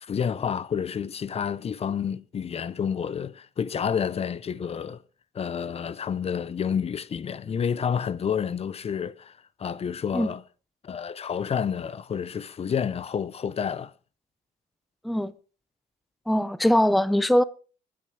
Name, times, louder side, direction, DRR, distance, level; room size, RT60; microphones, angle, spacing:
voice 1, 0.0-5.0 5.3-10.4 10.8-13.9, left 7 dB, 35° left, 0.7 m, -29 dB
voice 2, 16.3-17.4, equal, ahead, 0.6 m, -21 dB
19.5 x 9.5 x 4.7 m
cardioid pair, 90°, 17 cm